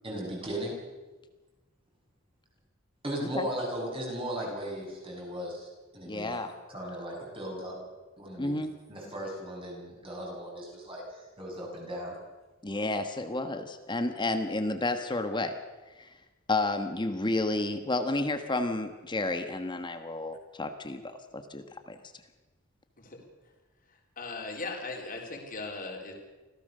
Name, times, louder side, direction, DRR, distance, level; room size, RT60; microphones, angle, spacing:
voice 1, 0.0-0.8 3.0-5.7 5.9-6.4 6.7-7.8 8.2-8.6 8.9-11.0 11.4-12.2, right 1 dB, 25° right, -1 dB, 7.2 m, -36 dB
voice 2, 6.0-6.5 8.4-8.7 12.6-15.5 16.0-16.1 16.5-22.0, left 2 dB, 20° left, 8 dB, 1.3 m, -31 dB
voice 3, 24.2-26.2, left 3 dB, 40° left, 1 dB, 3.8 m, -38 dB
26.0 x 16.5 x 6.7 m, 1.2 s
head